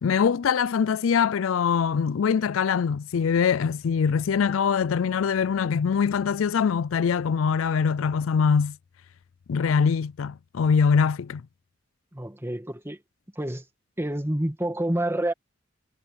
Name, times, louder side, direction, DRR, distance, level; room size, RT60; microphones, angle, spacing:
voice 1, 0.0-8.8 9.5-11.4, left 6 dB, 80° left, 0.4 m, -23 dB
voice 2, 12.1-13.0 13.4-13.6 14.0-15.3, right 1 dB, 10° right, 2.2 m, -28 dB
head